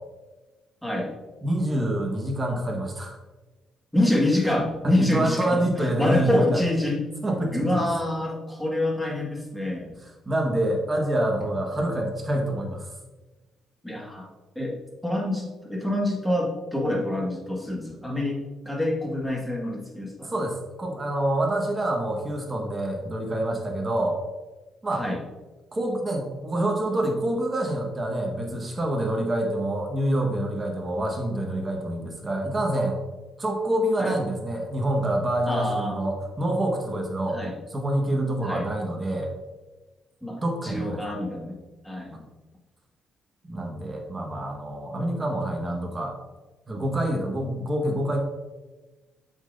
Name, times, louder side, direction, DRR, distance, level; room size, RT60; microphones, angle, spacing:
voice 1, 0.8-1.1 3.9-7.0 7.5-9.9 13.8-14.3 14.6-14.7 15.0-18.4 18.6-20.3 25.0-25.2 34.0-34.2 35.5-36.1 37.3-37.6 38.4-38.7 40.2-41.6 41.8-42.2, left 1 dB, 5° left, -2 dB, 1.8 m, -26 dB
voice 2, 1.4-3.2 4.8-6.6 7.2-7.8 10.0-12.9 20.2-24.2 24.8-25.1 25.7-33.0 33.4-37.4 37.7-39.3 40.4-41.1 43.5-46.2 46.7-48.2, right 1 dB, 25° right, 1 dB, 1.5 m, -27 dB
7.0 x 5.8 x 2.7 m, 1.2 s
cardioid pair, 90°, 0 cm